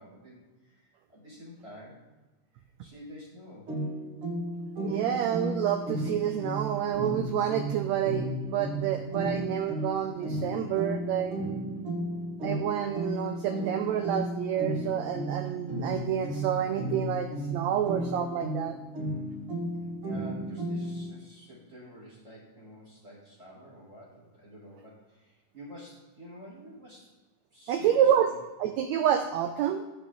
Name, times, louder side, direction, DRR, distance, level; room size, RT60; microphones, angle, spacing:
voice 1, 0.0-2.0 2.8-3.7 20.0-27.1 27.5-28.4, equal, 20° right, -6 dB, 4.3 m, -49 dB
sound 1, 3.7-21.1, right 1 dB, 45° right, 2.2 m, -34 dB
voice 2, 4.8-11.4 12.4-18.8 27.7-28.3 28.6-29.8, right 10 dB, 90° right, 7 dB, 1.5 m, -28 dB
15.5 x 6.3 x 3.8 m, 1.1 s
omnidirectional pair, 3.8 m